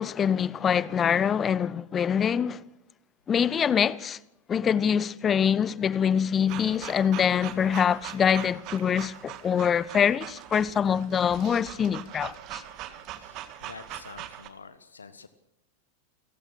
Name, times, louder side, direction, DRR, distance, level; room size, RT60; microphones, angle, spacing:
voice 1, 0.0-2.6 3.3-4.2 4.5-12.6, left 8 dB, 25° left, 0.7 m, -24 dB
sound 1, 6.5-14.5, right 12 dB, 40° right, 1.9 m, -41 dB
voice 2, 13.1-15.3, left 5 dB, 75° left, 1.1 m, -47 dB
28.5 x 15.5 x 6.3 m
figure-of-eight pair, 90°, 0 cm